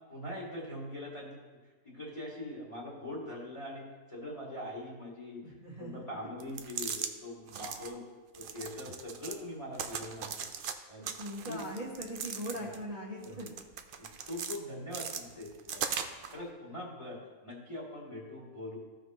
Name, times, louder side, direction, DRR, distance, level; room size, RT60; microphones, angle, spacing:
voice 1, 0.1-1.4 1.8-5.4 5.8-8.0 8.3-10.5 10.9-11.0 11.4-11.6 13.2-13.5 14.0-15.9 16.3-18.8, left 1 dB, 20° left, -6 dB, 2.3 m, -42 dB
voice 2, 5.4-6.0 11.0-13.5, equal, 25° right, -8 dB, 1.4 m, -40 dB
sound 1, 6.4-7.1 7.5-7.9 8.3-9.4 9.7-10.7 11.0-12.8 13.2-14.6 14.9-16.3, right 7 dB, 80° right, 0.4 m, -39 dB
15.0 x 5.1 x 3.0 m, 1.3 s
omnidirectional pair, 1.6 m